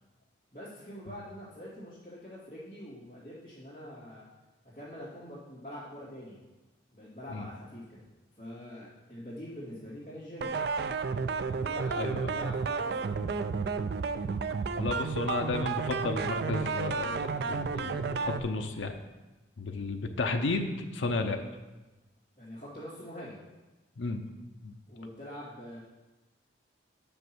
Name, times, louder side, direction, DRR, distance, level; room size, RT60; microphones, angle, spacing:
voice 1, 0.5-4.3 4.6-6.4 6.9-8.0 8.4-10.5 11.5-13.4 22.4-23.4 24.9-25.8, equal, 25° left, -15 dB, 2.5 m, -44 dB
sound 1, 10.4-18.4, right 5 dB, 55° right, 0.3 m, -32 dB
voice 2, 12.0-12.4 14.7-19.0 19.6-21.4 24.0-24.2 24.6-24.7, left 3 dB, 80° left, 5 dB, 0.6 m, -33 dB
6.3 x 5.4 x 6.1 m, 1.1 s
head